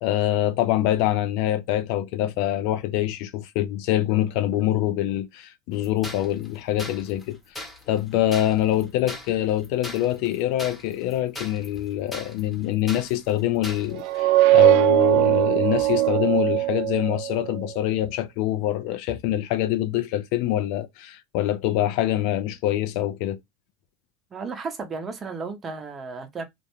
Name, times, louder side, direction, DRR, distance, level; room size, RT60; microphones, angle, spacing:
voice 1, 0.0-7.4 7.9-23.4, left 13 dB, 65° left, 0.4 m, -25 dB
sound 1, 5.8-14.2, left 1 dB, 15° left, 0.9 m, -40 dB
sound 2, 14.0-17.5, right 16 dB, 70° right, 0.3 m, -20 dB
voice 2, 24.3-26.4, right 4 dB, 30° right, 0.7 m, -34 dB
2.5 x 2.1 x 3.0 m
supercardioid pair, 115°, 0 cm